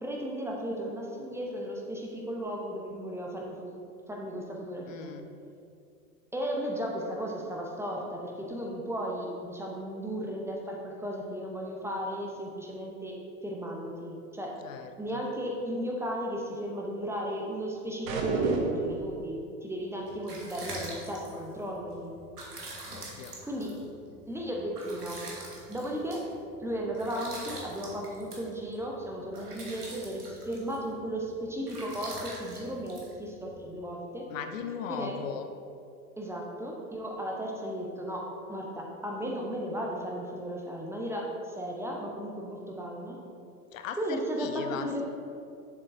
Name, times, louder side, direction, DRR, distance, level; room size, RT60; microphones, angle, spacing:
voice 1, 0.0-3.7 4.1-5.1 6.3-13.2 13.4-14.6 15.0-22.1 23.4-23.8 24.3-25.2 25.7-26.3 26.6-34.2 34.9-35.2 36.2-43.2 44.0-45.0, equal, 5° right, -2 dB, 0.7 m, -35 dB
voice 2, 4.9-5.3 14.6-15.2 22.9-23.4 34.3-35.5 43.7-45.0, left 7 dB, 60° left, 7 dB, 0.6 m, -38 dB
sound 1, 18.1-19.1, right 3 dB, 60° right, 1.1 m, -29 dB
sound 2, 20.0-33.8, right 2 dB, 85° right, 1.4 m, -45 dB
6.9 x 6.7 x 2.6 m, 2.4 s
figure-of-eight pair, 90°, 45 cm